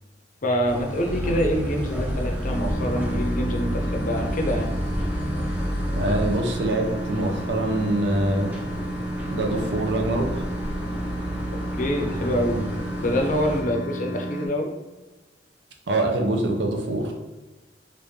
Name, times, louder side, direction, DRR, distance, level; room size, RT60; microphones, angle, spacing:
voice 1, 0.4-4.7 11.8-12.7 13.0-14.7, equal, 45° left, 2 dB, 0.6 m, -25 dB
sound 1, 0.6-13.6, equal, 10° right, 0.6 m, -33 dB
sound 2, 1.1-6.3, equal, 15° left, 0.8 m, -29 dB
sound 3, 2.4-14.5, right 1 dB, 85° left, 0.7 m, -33 dB
voice 2, 5.9-8.5 9.3-10.4 15.9-17.1, right 1 dB, 75° right, 2 dB, 0.6 m, -24 dB
3.1 x 2.5 x 3.5 m, 1.1 s
head